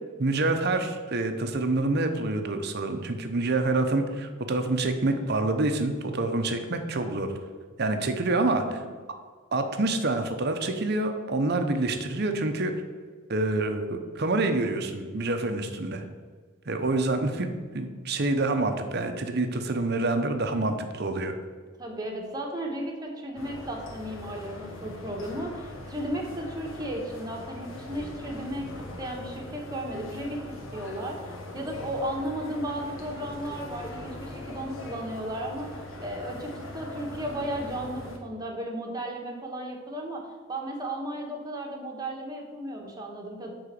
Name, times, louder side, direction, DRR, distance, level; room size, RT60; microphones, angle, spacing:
voice 1, 0.2-7.3 7.8-8.8 9.5-12.7 13.3-16.0 16.7-17.5 17.7-21.4, right 2 dB, 55° right, 6 dB, 0.8 m, -27 dB
voice 2, 8.4-8.9 21.8-28.7 29.0-30.4 30.7-35.7 36.0-40.2 40.5-43.5, right 1 dB, 20° right, 0 dB, 1.3 m, -34 dB
Indoor environment at Budapest Grand Market Hall, 23.4-38.2, left 1 dB, 75° left, 1.4 m, -41 dB
8.7 x 4.0 x 6.8 m, 1.5 s
head